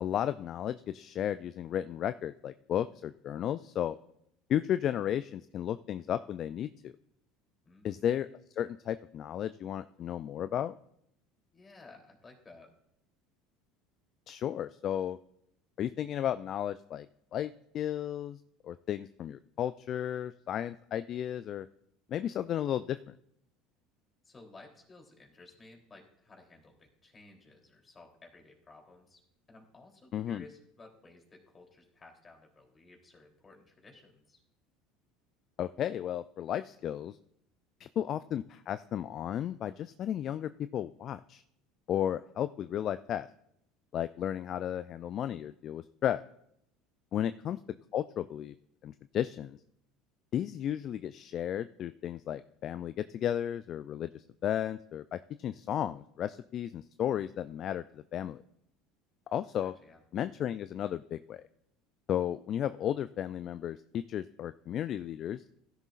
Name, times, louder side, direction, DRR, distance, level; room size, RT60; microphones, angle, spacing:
voice 1, 0.0-4.0 4.5-6.9 7.8-8.3 8.6-10.7 14.3-15.2 15.8-17.1 17.3-18.4 18.6-21.7 22.1-23.0 30.1-30.4 35.6-37.2 37.8-41.4 41.9-43.3 43.9-46.2 47.1-47.6 47.9-48.5 48.8-49.6 50.3-58.4 59.3-59.7 60.1-61.4 62.1-65.4, left 10 dB, 50° left, 13 dB, 0.3 m, -34 dB
voice 2, 7.6-8.0 11.5-12.7 24.2-29.2 29.5-34.4 59.6-60.0, left 3 dB, 25° left, 1 dB, 3.2 m, -56 dB
16.0 x 11.0 x 2.5 m, 0.74 s
hypercardioid pair, 75°, 0 cm